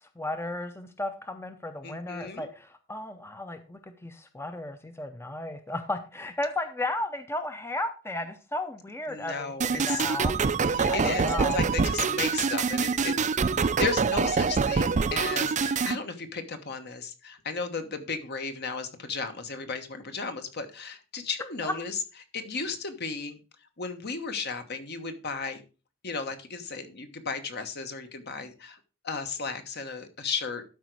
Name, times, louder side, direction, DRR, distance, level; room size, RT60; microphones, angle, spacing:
voice 1, 0.0-10.3 10.9-11.6 21.6-21.7, left 2 dB, 10° left, 8 dB, 0.6 m, -34 dB
voice 2, 1.8-2.5 9.1-10.0 10.6-22.0 22.3-23.4 23.8-25.6 26.0-28.8 29.0-30.7, left 4 dB, 55° left, 8 dB, 1.2 m, -34 dB
sound 1, 9.6-16.0, right 5 dB, 35° right, 0.4 m, -25 dB
12.5 x 5.1 x 4.7 m, 0.34 s
head